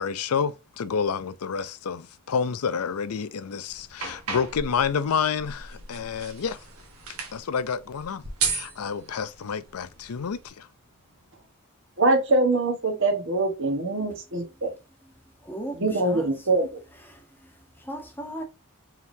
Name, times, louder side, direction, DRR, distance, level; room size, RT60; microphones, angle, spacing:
voice 1, 0.0-6.6 7.3-10.7, left 6 dB, 90° left, 0.5 m, -29 dB
sound 1, 3.7-10.5, right 5 dB, 85° right, 1.4 m, -36 dB
voice 2, 12.0-14.7 15.8-16.8, right 2 dB, 60° right, 1.3 m, -23 dB
voice 3, 15.4-16.3 17.0-18.4, right 1 dB, 10° left, 1.1 m, -38 dB
4.6 x 3.6 x 2.7 m
head